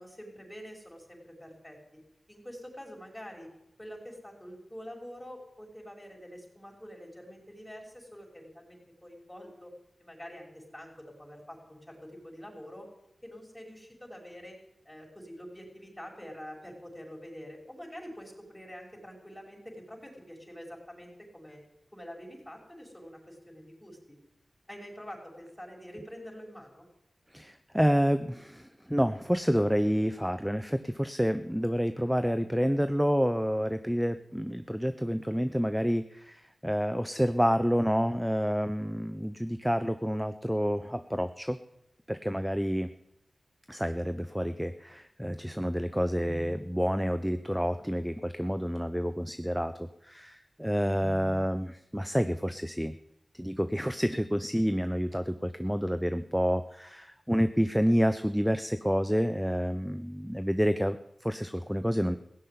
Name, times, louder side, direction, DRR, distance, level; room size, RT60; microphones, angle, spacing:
voice 1, 0.0-1.8 2.3-3.5 3.8-12.9 13.2-14.6 14.9-21.6 21.9-24.2 24.7-26.9, equal, 15° left, 0 dB, 5.6 m, -46 dB
voice 2, 27.3-41.6 42.1-42.9 43.7-52.9 53.3-62.2, equal, 5° right, 10 dB, 0.7 m, -29 dB
16.5 x 7.6 x 9.6 m, 0.83 s
cardioid pair, 45°, 0 cm